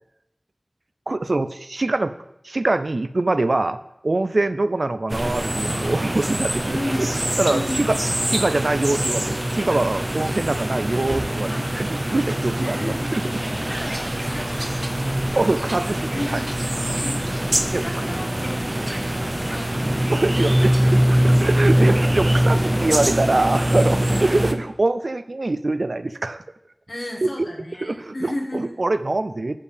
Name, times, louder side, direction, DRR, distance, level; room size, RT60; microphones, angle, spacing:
voice 1, 1.1-2.2 2.4-3.8 4.0-7.1 7.4-8.0 8.3-12.8 13.1-13.2 13.5-13.6 15.3-16.4 17.7-17.8 20.1-26.4 27.8-29.6, right 2 dB, 75° right, 11 dB, 0.4 m, -24 dB
sound 1, 5.1-24.5, right 1 dB, 30° right, 0.6 m, -23 dB
voice 2, 6.7-7.2 7.5-8.0 11.5-11.7 12.6-13.1 13.6-15.4 16.1-16.5 17.0-20.6 21.1-21.7 24.0-24.3 26.9-28.8, left 1 dB, 65° left, 0 dB, 1.6 m, -34 dB
8.4 x 7.2 x 3.4 m, 0.86 s
wide cardioid pair, 40°, 0 cm